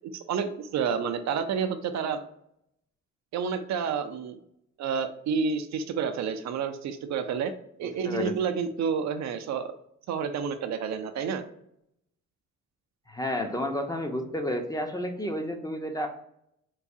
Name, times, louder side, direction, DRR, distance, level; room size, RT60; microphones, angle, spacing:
voice 1, 0.0-2.2 3.3-4.4 4.8-7.5 7.8-9.7 10.1-11.4, right 6 dB, 65° right, 8 dB, 0.5 m, -29 dB
voice 2, 7.8-8.3 13.1-16.1, left 1 dB, 10° left, 4 dB, 0.6 m, -31 dB
4.6 x 2.3 x 2.6 m, 0.73 s
cardioid pair, 90°, 30 cm